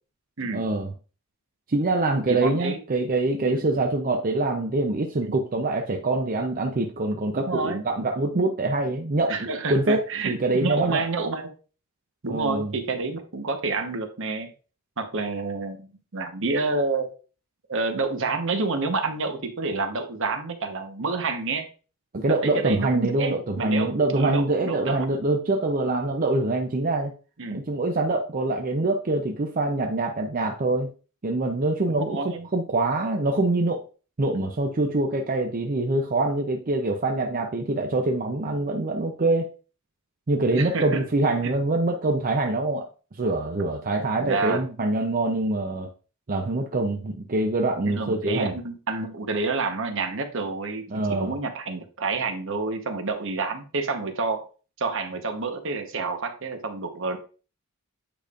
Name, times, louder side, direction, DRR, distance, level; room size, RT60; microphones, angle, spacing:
voice 1, 0.5-0.9 1.7-11.0 12.3-12.7 22.1-27.1 27.5-30.9 31.2-33.8 34.2-39.5 40.3-42.9 43.2-45.9 46.3-48.5 50.9-51.3, right 2 dB, 40° right, 0.6 m, -25 dB
voice 2, 2.3-2.8 3.5-3.7 5.2-5.4 7.4-7.8 9.3-11.5 12.2-14.5 15.0-17.1 17.7-21.7 22.1-25.1 27.4-27.6 31.9-32.5 40.5-41.0 41.4-41.5 44.2-44.6 47.9-54.4 54.8-57.2, right 3 dB, 60° right, 1.0 m, -29 dB
8.9 x 5.1 x 2.5 m
head